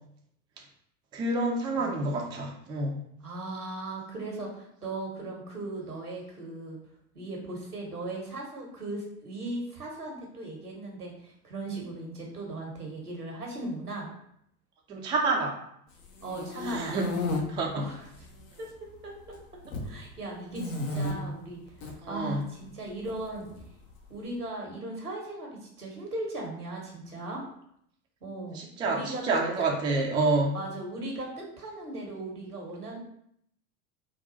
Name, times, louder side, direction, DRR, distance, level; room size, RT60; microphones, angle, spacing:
voice 1, 1.1-3.0 14.9-15.6 16.6-17.1 17.5-17.9 22.0-22.4 28.5-30.6, right 3 dB, 10° right, 0 dB, 0.3 m, -28 dB
voice 2, 1.8-2.1 3.2-6.8 7.1-14.1 16.2-17.0 17.7-18.3 18.6-18.7 19.0-19.1 19.8-21.6 22.0-23.5 24.1-25.5 25.8-27.4 28.2-29.2 30.5-33.0, right 2 dB, 85° right, 0 dB, 1.1 m, -38 dB
sound 1, 16.0-17.4 18.1-18.7 18.9-19.9 20.5-21.1 21.7-21.9 23.1-24.0, left 2 dB, 60° left, 0.9 m, -33 dB
3.8 x 2.3 x 3.9 m, 0.71 s
figure-of-eight pair, 75°, 44 cm